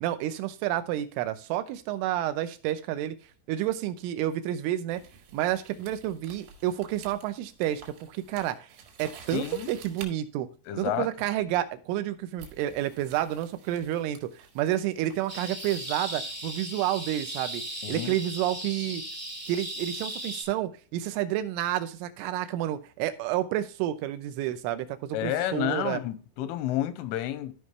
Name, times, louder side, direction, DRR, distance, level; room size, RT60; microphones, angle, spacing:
voice 1, 0.0-3.2 3.5-5.0 5.3-8.7 9.0-10.5 10.8-17.6 17.9-19.0 19.5-26.0, right 13 dB, 85° right, 3.3 m, -30 dB
sound 1, 4.9-10.1 11.4-11.6 12.4-16.7, right 6 dB, 65° right, 3.7 m, -51 dB
voice 2, 9.3-9.7 10.7-11.1 17.8-18.1 25.1-27.6, left 12 dB, 90° left, 3.4 m, -30 dB
sound 2, 15.3-20.4, right 1 dB, 20° right, 0.4 m, -37 dB
14.0 x 5.4 x 3.2 m
omnidirectional pair, 5.5 m